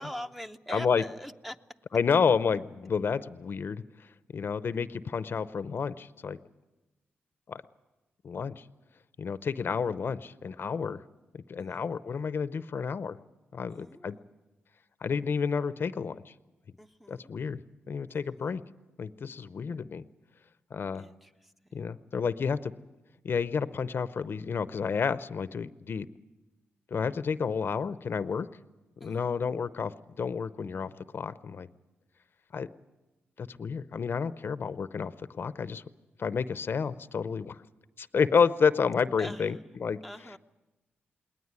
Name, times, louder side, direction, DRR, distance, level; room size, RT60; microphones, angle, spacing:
voice 1, 0.0-1.6 11.6-11.7 13.7-14.4 16.8-17.4 18.1-18.5 21.0-21.8 29.0-29.4 39.2-39.5 40.0-40.4, equal, 5° right, 8 dB, 0.7 m, -43 dB
voice 2, 0.7-1.0 1.9-4.1 4.3-6.4 7.5-7.6 8.2-8.6 9.2-11.0 11.3-13.2 13.5-14.2 15.0-16.3 17.1-17.6 17.9-18.6 19.0-20.0 20.7-21.1 21.7-22.7 23.2-26.1 26.9-28.5 29.0-31.7 32.5-32.7 33.4-35.8 36.2-37.6 38.0-40.0, left 6 dB, 55° left, 15 dB, 0.7 m, -30 dB
19.5 x 19.0 x 9.7 m, 1.1 s
cardioid pair, 70°, 4 cm